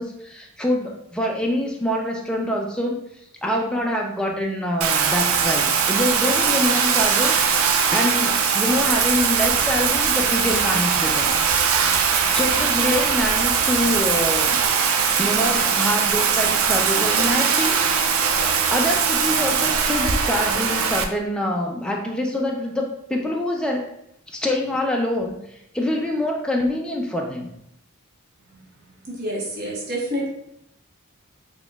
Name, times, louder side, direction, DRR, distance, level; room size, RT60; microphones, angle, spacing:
voice 1, 0.0-11.3 12.0-14.6 15.2-18.3 18.7-23.9 24.3-27.5, left 1 dB, 5° left, 0 dB, 0.3 m, -25 dB
Bathtub (filling or washing), 4.8-21.0, right 6 dB, 75° right, 0.4 m, -20 dB
Mechanicalish Sound, 8.8-15.7, equal, 25° right, 0.9 m, -41 dB
sound 1, 16.9-21.0, left 1 dB, 60° left, 0.6 m, -36 dB
voice 2, 29.0-30.3, right 1 dB, 45° right, -3 dB, 1.0 m, -28 dB
4.0 x 2.9 x 2.3 m, 0.77 s
head